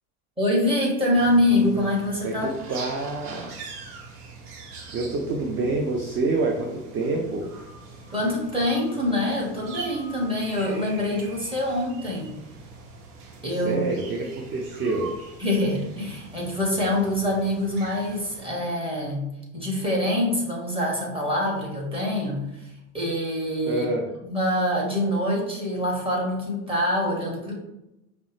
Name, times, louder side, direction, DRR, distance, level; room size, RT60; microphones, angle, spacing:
voice 1, 0.4-2.5 8.1-12.3 13.4-13.8 15.4-19.3 19.5-23.9 24.2-27.5, left 1 dB, 10° right, -3 dB, 1.5 m, -25 dB
sound 1, 1.1-18.4, right 4 dB, 80° right, 0.9 m, -43 dB
voice 2, 2.2-3.6 4.9-7.5 13.6-15.2 23.7-24.1, right 3 dB, 30° right, 1 dB, 0.5 m, -27 dB
5.1 x 2.1 x 3.1 m, 0.91 s
hypercardioid pair, 80°, 45 cm